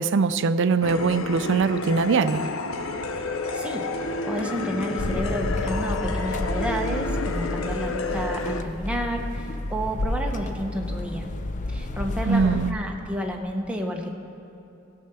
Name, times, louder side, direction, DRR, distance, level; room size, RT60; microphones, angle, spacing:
voice 1, 0.0-2.5 12.3-12.8, right 4 dB, 60° right, 13 dB, 0.4 m, -22 dB
sound 1, 0.8-8.6, left 3 dB, 75° left, 0.6 m, -30 dB
voice 2, 3.5-3.9 4.3-11.3 11.7-14.1, equal, 5° right, 1 dB, 0.9 m, -30 dB
Brass instrument, 3.7-7.9, left 2 dB, 25° right, 1.8 m, -38 dB
sound 2, 5.0-12.7, left 1 dB, 35° left, 0.5 m, -31 dB
16.0 x 5.6 x 6.8 m, 2.8 s
head